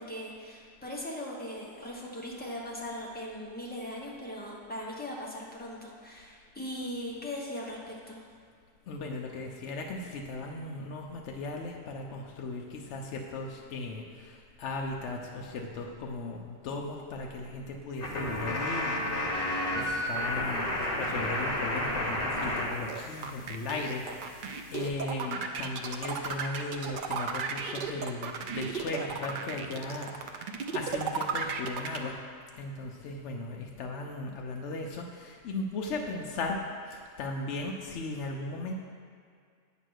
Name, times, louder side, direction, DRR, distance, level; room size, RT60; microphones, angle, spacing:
voice 1, 0.0-8.2, left 1 dB, 10° left, -4 dB, 0.9 m, -39 dB
voice 2, 8.9-32.2 32.6-36.6 36.9-38.7, left 3 dB, 65° left, 0 dB, 0.8 m, -37 dB
sound 1, 18.0-22.7 22.9-24.9, left 1 dB, 45° left, 1.2 m, -32 dB
sound 2, 22.9-32.0, right 6 dB, 75° right, 0.4 m, -34 dB
8.8 x 3.0 x 6.3 m, 2.2 s
omnidirectional pair, 1.4 m